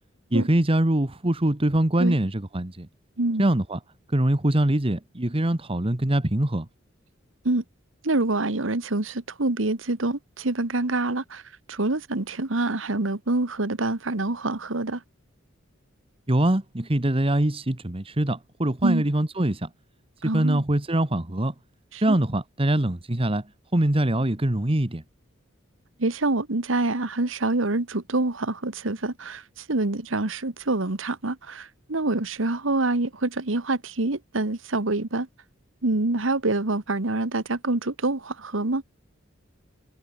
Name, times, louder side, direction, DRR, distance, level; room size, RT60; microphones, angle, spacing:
voice 1, 0.3-2.9 3.4-3.8 4.1-6.6 16.3-19.7 20.3-21.5 22.0-23.4 23.7-25.0, right 1 dB, 30° right, 1.4 m, -23 dB
voice 2, 3.2-3.5 7.4-7.6 8.0-11.4 11.7-15.0 18.8-19.0 20.2-20.6 21.9-22.1 26.0-29.4 29.7-35.3 35.8-38.8, right 2 dB, 90° right, 1.7 m, -26 dB
head